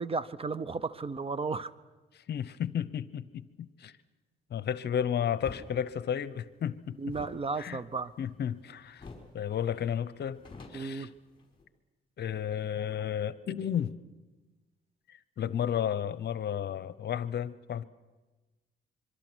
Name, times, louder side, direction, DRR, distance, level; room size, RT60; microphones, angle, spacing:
voice 1, 0.0-1.7 7.0-8.1 10.7-11.1, right 4 dB, 30° right, 17 dB, 0.8 m, -34 dB
voice 2, 2.1-3.9 4.5-7.1 7.6-7.8 8.2-9.0 9.3-10.4 10.7-11.1 12.2-13.9 15.1-17.8, left 9 dB, 55° left, 16 dB, 0.9 m, -33 dB
sound 1, 5.4-5.7 7.0-8.6 9.0-9.4 9.7-9.8 10.1-11.6, left 4 dB, 25° left, 5.6 m, -47 dB
25.5 x 23.5 x 6.3 m, 1.2 s
cardioid pair, 90°, 20 cm